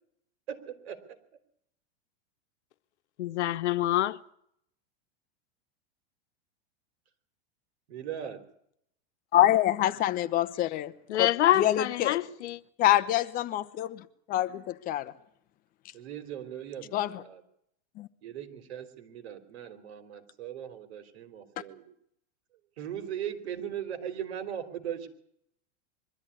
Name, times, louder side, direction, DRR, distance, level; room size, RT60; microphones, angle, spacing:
voice 1, 0.5-1.0 7.9-8.4 15.9-17.4 18.2-21.8 22.8-25.1, right 9 dB, 70° right, 3.5 m, -39 dB
voice 2, 3.2-4.2 11.1-12.6, left 14 dB, 90° left, 1.0 m, -26 dB
voice 3, 9.3-10.9 11.2-11.3 11.6-12.2 12.8-14.0 14.3-15.1 16.9-17.2 18.0-18.1, left 13 dB, 25° left, 0.8 m, -26 dB
23.0 x 13.0 x 9.8 m
supercardioid pair, 155°, 33 cm